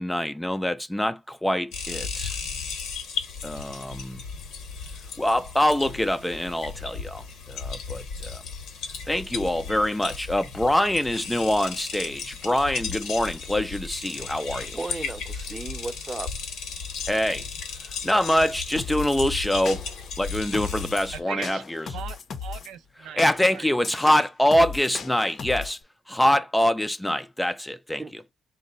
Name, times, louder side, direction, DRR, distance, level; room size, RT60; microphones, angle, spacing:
voice 1, 0.0-2.4 3.4-4.2 5.2-8.4 9.1-14.8 17.1-17.5 17.8-19.8 20.2-21.9 23.0-25.8 26.1-28.0, left 1 dB, 10° left, 0.3 m, -25 dB
sound 1, 1.7-21.2, left 5 dB, 80° left, 1.1 m, -35 dB
voice 2, 14.1-16.3 28.0-28.1, right 2 dB, 20° right, 0.7 m, -36 dB
sound 2, 18.8-19.2 19.7-20.1 20.5-21.0 21.4-22.7 23.2-25.8, left 5 dB, 55° left, 0.6 m, -37 dB
voice 3, 21.1-21.6 21.9-23.2 23.5-23.7, right 9 dB, 85° right, 0.4 m, -38 dB
4.1 x 2.2 x 3.7 m
cardioid pair, 90°, 0 cm